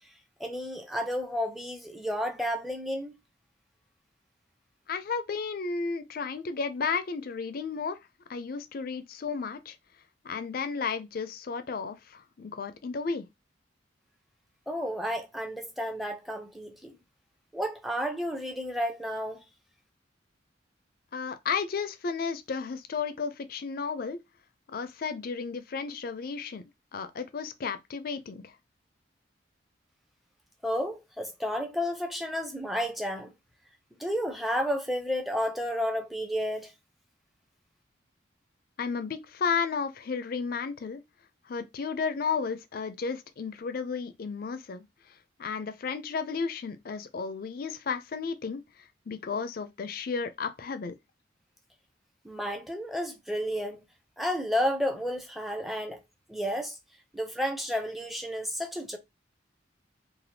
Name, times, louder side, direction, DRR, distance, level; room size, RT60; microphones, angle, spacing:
voice 1, 0.4-3.2 14.7-17.0 17.5-19.4 30.6-33.3 34.0-36.7 52.2-53.8 54.2-56.0 56.3-56.8 57.1-59.0, equal, ahead, 0.5 m, -31 dB
voice 2, 4.9-8.0 8.3-9.8 10.2-13.3 21.1-24.2 24.7-28.5 38.8-41.0 41.5-50.9, left 5 dB, 50° left, 0.4 m, -33 dB
3.3 x 2.4 x 2.7 m
head